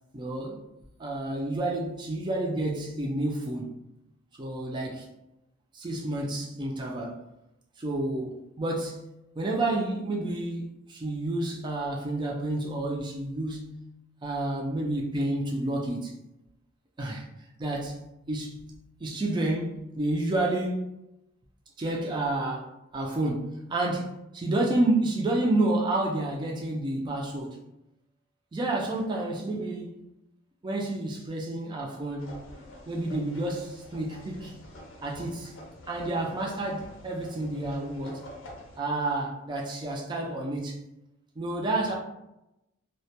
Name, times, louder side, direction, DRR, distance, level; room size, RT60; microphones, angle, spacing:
voice 1, 0.1-0.6 1.0-3.7 4.4-5.1 5.7-7.2 7.8-9.0 9.4-13.8 14.2-16.1 17.0-17.3 17.6-18.6 19.0-20.9 21.8-27.6 28.5-30.0 30.6-32.4 32.9-34.6 35.0-35.6 35.9-38.3 38.8-40.8 41.4-41.9, right 2 dB, 20° right, 0.3 m, -30 dB
sound 1, 32.2-38.8, left 1 dB, 65° left, 0.5 m, -47 dB
2.1 x 2.1 x 2.8 m
head